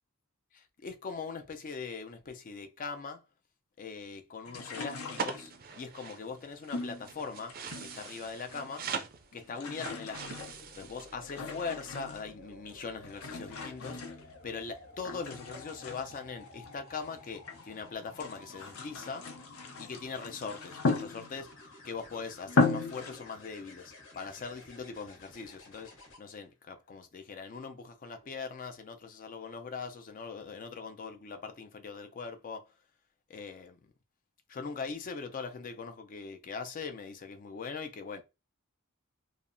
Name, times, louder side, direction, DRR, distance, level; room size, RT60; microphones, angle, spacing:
voice 1, 0.5-3.2 3.8-8.9 9.3-14.0 14.4-19.3 19.8-21.5 21.8-32.7 33.3-33.8 34.5-38.2, left 5 dB, 40° left, 0.4 m, -41 dB
sound 1, 4.5-5.7 6.7-8.2 8.4-9.0 9.3-12.4 13.0-14.7 15.0-17.7 18.1-21.6 22.1-22.2 22.5-23.2, left 3 dB, 85° left, 0.6 m, -36 dB
sound 2, 5.2-11.2, right 5 dB, 45° right, 0.4 m, -41 dB
sound 3, 10.1-26.2 28.1-28.4, left 2 dB, 65° left, 0.9 m, -54 dB
2.8 x 2.0 x 2.5 m
head